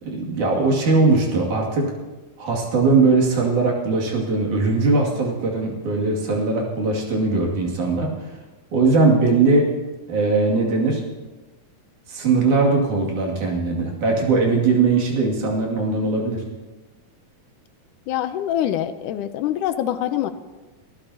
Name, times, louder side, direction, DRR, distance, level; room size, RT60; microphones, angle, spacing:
voice 1, 0.0-1.9 2.4-8.1 8.7-9.7 10.1-11.0 12.1-16.4, right 3 dB, 65° right, -2 dB, 3.8 m, -20 dB
voice 2, 18.1-20.3, left 11 dB, 80° left, 10 dB, 2.1 m, -24 dB
24.5 x 14.0 x 2.8 m, 1.2 s
omnidirectional pair, 3.7 m